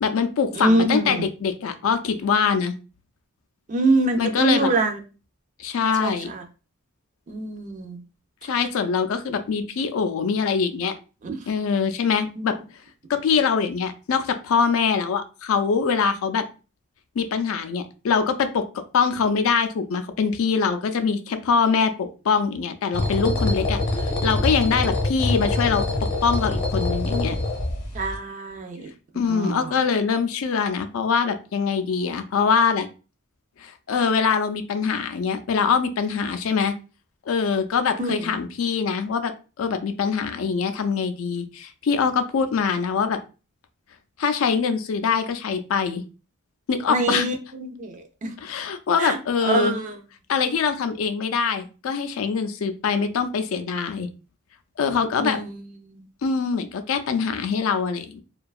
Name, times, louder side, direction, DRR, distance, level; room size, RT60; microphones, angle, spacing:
voice 1, 0.0-2.7 4.2-4.7 5.6-6.3 8.4-10.9 11.5-12.6 13.1-16.4 17.2-27.4 29.2-32.9 33.6-36.7 37.3-39.3 39.6-43.2 44.2-46.0 46.7-47.3 48.4-49.8 50.3-54.1 54.8-55.4 56.2-58.2, left 6 dB, 70° left, 9 dB, 0.4 m, -23 dB
voice 2, 0.5-1.2 3.7-5.0 6.0-6.4 7.3-8.0 11.2-11.4 12.4-12.5 27.9-28.9 29.3-29.8 38.0-38.2 46.9-48.3 49.0-50.0 55.2-55.5 55.8-56.0, right 2 dB, 35° right, 5 dB, 0.4 m, -25 dB
sound 1, 22.9-28.2, left 2 dB, 40° left, 0.8 m, -25 dB
2.6 x 2.2 x 2.3 m, 0.34 s
head